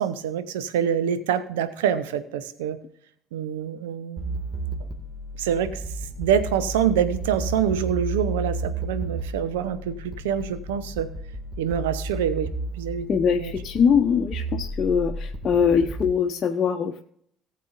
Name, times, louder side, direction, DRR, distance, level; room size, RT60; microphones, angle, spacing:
voice 1, 0.0-2.8 3.3-4.4 5.4-11.1 11.6-12.5 12.7-13.1 13.4-13.5, right 8 dB, 70° right, 13 dB, 0.8 m, -26 dB
sound 1, 4.2-16.1, right 2 dB, 25° right, 2.2 m, -33 dB
voice 2, 13.1-17.0, left 6 dB, 40° left, 2 dB, 0.8 m, -22 dB
19.0 x 7.5 x 2.6 m, 0.68 s
figure-of-eight pair, 50°, 0 cm